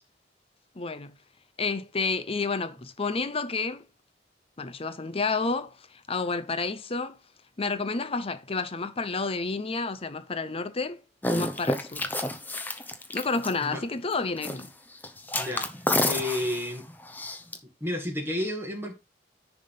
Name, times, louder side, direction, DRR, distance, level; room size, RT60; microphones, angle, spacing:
voice 1, 0.8-1.1 1.6-3.8 4.6-5.8 6.1-7.2 7.6-11.0 11.3-12.1 13.1-14.7, left 4 dB, 35° left, 0.7 m, -30 dB
sound 1, 11.2-13.8 14.4-14.7 14.9-17.6, left 1 dB, 10° left, 0.9 m, -30 dB
voice 2, 15.3-15.7 16.0-16.8 17.8-18.9, left 1 dB, 15° right, 2.1 m, -31 dB
10.0 x 3.6 x 5.5 m
head